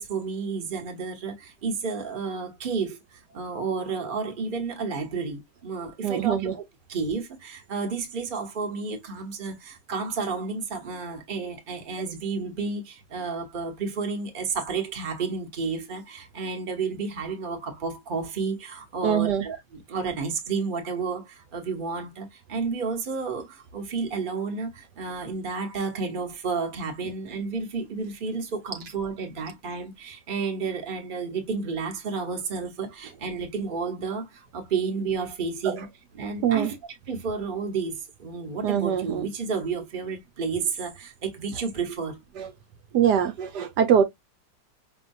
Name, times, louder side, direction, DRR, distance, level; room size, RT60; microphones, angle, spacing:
voice 1, 0.0-6.6 6.9-35.9 36.1-36.7 37.1-42.2, right 5 dB, 35° right, 1.1 m, -31 dB
voice 2, 6.0-6.5 19.0-19.4 35.6-35.8 36.4-36.7 38.6-39.3 42.4-42.5 42.9-44.0, right 8 dB, 70° right, 1.3 m, -23 dB
5.2 x 3.2 x 2.6 m
omnidirectional pair, 1.9 m